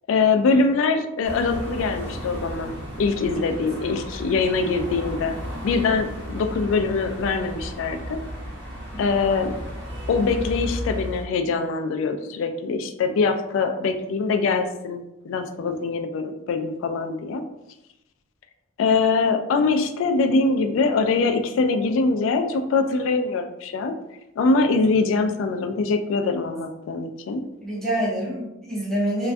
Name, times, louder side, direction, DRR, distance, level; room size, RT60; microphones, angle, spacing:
voice 1, 0.1-5.3 5.6-8.2 9.0-9.5 10.1-17.4 18.8-23.9 24.4-27.4, left 4 dB, 75° left, 7 dB, 0.3 m, -23 dB
sound 1, 1.2-11.3, equal, 65° right, 0.7 m, -34 dB
voice 2, 27.6-29.3, right 1 dB, ahead, -7 dB, 0.6 m, -27 dB
2.2 x 2.2 x 2.5 m, 0.89 s
head